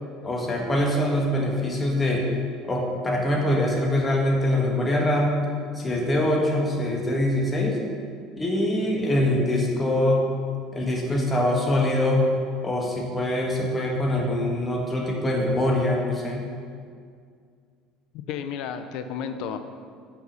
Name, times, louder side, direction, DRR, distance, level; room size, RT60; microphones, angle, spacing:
voice 1, 0.2-2.3 2.7-5.3 5.7-7.8 8.4-10.2 10.7-12.3 12.6-16.5, left 1 dB, 20° left, -1 dB, 1.6 m, -23 dB
voice 2, 18.3-19.6, left 7 dB, 65° left, 9 dB, 0.6 m, -32 dB
5.8 x 5.5 x 6.6 m, 2.1 s
hypercardioid pair, 75°, 0 cm